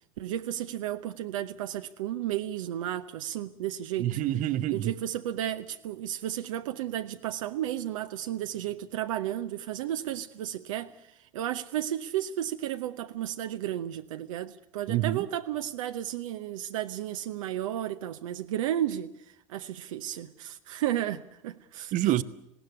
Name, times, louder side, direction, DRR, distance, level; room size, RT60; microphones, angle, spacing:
voice 1, 0.2-4.2 4.7-22.1, right 12 dB, 70° right, 0.8 m, -33 dB
voice 2, 4.0-4.9 14.9-15.2 21.9-22.2, right 13 dB, 45° right, 1.0 m, -27 dB
19.5 x 17.0 x 9.6 m
hypercardioid pair, 75°, 18 cm